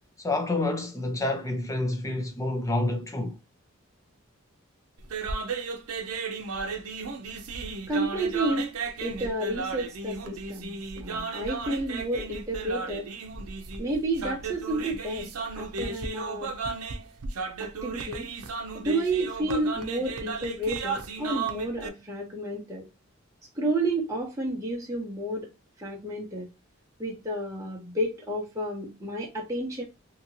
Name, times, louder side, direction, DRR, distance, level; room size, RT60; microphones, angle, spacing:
voice 1, 0.2-3.4, left 2 dB, 15° left, 0.6 m, -28 dB
sound 1, 5.0-21.9, right 4 dB, 90° right, 0.6 m, -34 dB
voice 2, 7.9-8.7 9.0-13.1 13.8-15.3 15.6-16.5 17.6-18.3 18.7-22.9 23.5-25.5 25.8-26.5 27.0-29.8, right 1 dB, 15° right, 0.8 m, -31 dB
2.8 x 2.8 x 2.7 m
head